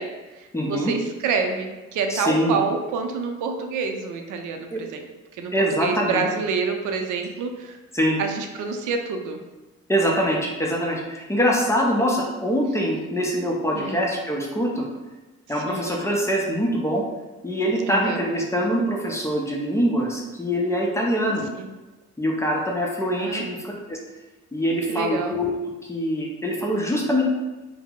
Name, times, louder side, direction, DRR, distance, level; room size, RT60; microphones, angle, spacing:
voice 1, 0.0-5.1 5.3-7.8 8.2-9.4 13.7-14.0 15.5-15.9 17.9-18.2 21.6-21.7 23.2-23.5 24.9-25.4, right 4 dB, 75° right, 4 dB, 0.5 m, -28 dB
voice 2, 0.5-0.9 2.1-2.6 4.7-4.8 5.5-6.2 7.9-8.2 9.9-14.9 15.5-17.0 17.4-21.4 22.2-23.6 23.9-24.0 24.5-25.5 25.9-27.2, equal, 10° left, -2 dB, 0.6 m, -23 dB
2.7 x 2.0 x 3.6 m, 1.1 s
cardioid pair, 90°, 30 cm